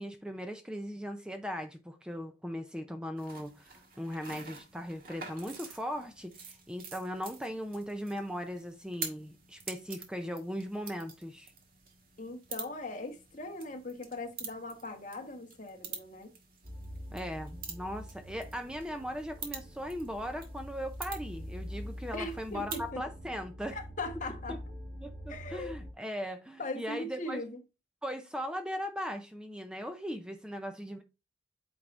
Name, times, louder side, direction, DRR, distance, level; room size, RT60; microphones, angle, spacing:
voice 1, 0.0-11.5 17.1-23.8 24.5-24.6 25.0-27.4 28.0-31.0, equal, 5° right, 0.6 m, -38 dB
sound 1, 3.2-22.9, right 5 dB, 55° right, 1.7 m, -47 dB
voice 2, 12.2-16.3 22.1-23.0 23.7-24.6 25.3-25.7 26.6-27.6, left 2 dB, 45° left, 1.3 m, -40 dB
sound 2, 16.6-25.9, equal, 85° right, 2.8 m, -45 dB
8.8 x 4.7 x 2.5 m
head